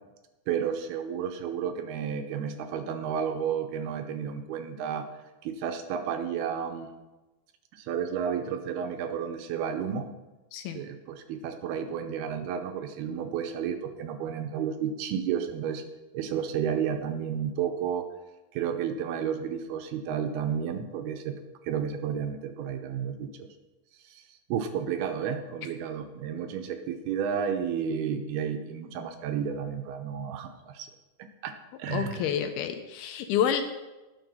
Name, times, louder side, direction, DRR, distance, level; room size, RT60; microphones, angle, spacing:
voice 1, 0.5-5.1 5.4-6.9 7.7-10.1 10.7-15.8 16.1-18.1 18.5-23.5 24.0-24.2 24.5-30.9 31.4-31.5 31.8-32.3, right 8 dB, 80° right, 6 dB, 2.6 m, -32 dB
voice 2, 31.9-33.6, left 9 dB, 80° left, 7 dB, 2.5 m, -28 dB
10.0 x 6.8 x 5.4 m, 1.1 s
omnidirectional pair, 4.7 m